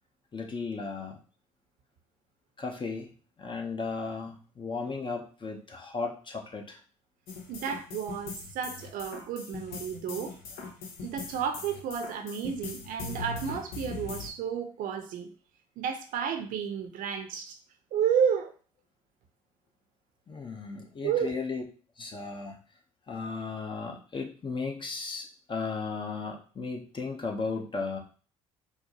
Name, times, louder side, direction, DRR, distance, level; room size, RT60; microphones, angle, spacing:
voice 1, 0.3-1.2 2.6-3.1 3.4-6.8 20.3-21.6 22.0-22.6 23.1-28.0, left 4 dB, 30° left, 2 dB, 0.9 m, -35 dB
sound 1, 7.3-14.3, left 4 dB, 65° left, 0.8 m, -40 dB
voice 2, 7.5-10.4 11.0-15.3 15.8-17.6 17.9-18.5 21.0-21.3, right 7 dB, 55° right, 6 dB, 0.6 m, -31 dB
4.4 x 2.0 x 2.9 m, 0.39 s
hypercardioid pair, 55°, 17 cm